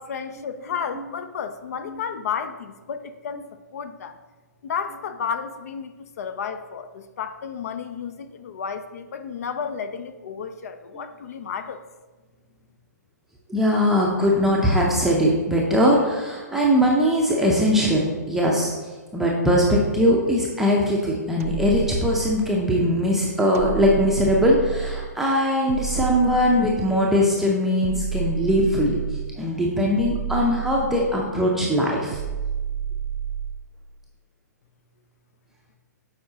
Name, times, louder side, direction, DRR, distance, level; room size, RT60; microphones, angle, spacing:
voice 1, 0.0-3.4 3.7-4.2 4.6-11.8, left 6 dB, 55° left, 11 dB, 0.5 m, -32 dB
voice 2, 13.5-18.7 19.1-29.0 29.4-32.2, equal, 5° right, -3 dB, 0.6 m, -21 dB
sound 1, 21.4-22.7 23.5-25.2 25.7-27.1 27.8-29.4 30.0-31.4 32.1-33.7, right 8 dB, 55° right, 0.4 m, -30 dB
7.5 x 4.8 x 2.8 m, 1.3 s
hypercardioid pair, 130°, 10 cm